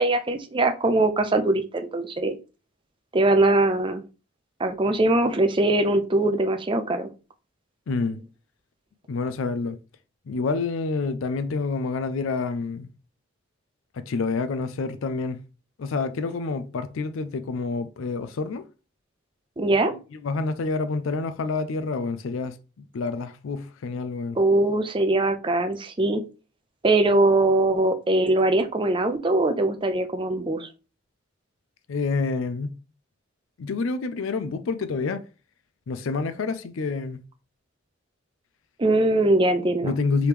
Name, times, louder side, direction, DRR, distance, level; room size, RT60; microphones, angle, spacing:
voice 1, 0.0-2.4 3.1-4.0 4.6-7.1 19.6-19.9 24.4-26.2 26.8-30.7 38.8-39.9, right 2 dB, 25° right, 0.5 m, -21 dB
voice 2, 7.9-8.2 9.1-9.8 10.3-12.9 13.9-15.4 15.8-18.6 19.9-24.4 31.9-32.7 33.6-35.2 35.9-37.2 39.8-40.3, left 4 dB, 75° left, 0.4 m, -28 dB
4.7 x 3.1 x 3.4 m
head